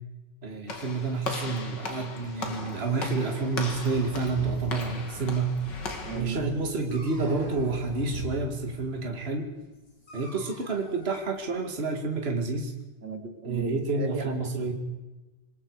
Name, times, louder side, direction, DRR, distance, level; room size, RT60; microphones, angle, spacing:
voice 1, 0.4-5.6 6.1-9.5 10.1-12.7 13.4-14.7, right 3 dB, 35° right, 2 dB, 2.4 m, -29 dB
Walk footsteps / Slam, 0.7-6.2, left 3 dB, 80° left, 2.9 m, -38 dB
sound 1, 2.2-9.4, right 1 dB, 50° right, 3.9 m, -42 dB
Dog, 4.4-12.1, equal, 55° left, 6.9 m, -53 dB
voice 2, 6.1-6.5 13.0-14.7, right 3 dB, 75° right, 4 dB, 3.1 m, -36 dB
26.0 x 21.5 x 4.9 m, 1.1 s
omnidirectional pair, 1.9 m